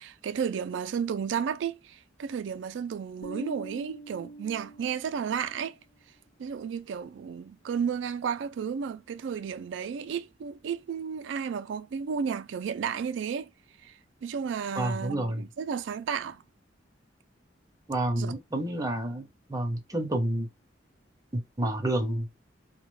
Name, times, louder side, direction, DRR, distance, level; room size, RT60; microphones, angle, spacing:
voice 1, 0.0-5.8 6.4-13.5 13.8-13.9 14.2-16.4 18.2-18.3, right 7 dB, 75° right, 0.3 m, -33 dB
Bass guitar, 3.2-5.7, right 2 dB, 80° left, 0.4 m, -44 dB
voice 2, 14.8-15.4 17.9-20.5 21.3-22.3, right 1 dB, 20° right, 0.6 m, -29 dB
2.3 x 2.1 x 3.1 m
head